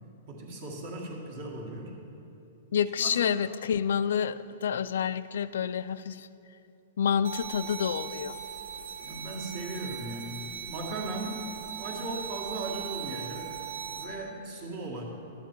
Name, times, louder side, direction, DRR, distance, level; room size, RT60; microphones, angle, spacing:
voice 1, 0.3-1.9 3.0-3.4 9.0-13.5 13.8-15.0, right 2 dB, 45° right, 0 dB, 1.7 m, -38 dB
voice 2, 2.7-6.3 7.0-8.4, left 8 dB, 80° left, 14 dB, 0.3 m, -28 dB
sound 1, 7.2-14.0, right 8 dB, 85° right, 1.0 m, -39 dB
12.0 x 8.2 x 4.5 m, 2.8 s
hypercardioid pair, 165°, 0 cm